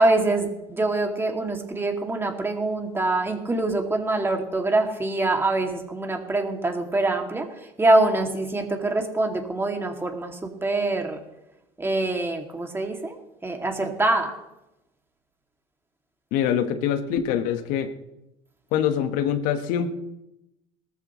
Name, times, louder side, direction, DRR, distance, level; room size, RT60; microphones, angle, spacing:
voice 1, 0.0-7.5 7.8-11.2 11.8-13.2 13.4-14.3, right 2 dB, 15° right, 3 dB, 2.4 m, -24 dB
voice 2, 16.3-17.9 18.7-19.9, left 9 dB, 70° left, 9 dB, 1.3 m, -24 dB
19.0 x 14.0 x 3.2 m, 0.91 s
supercardioid pair, 85°, 14 cm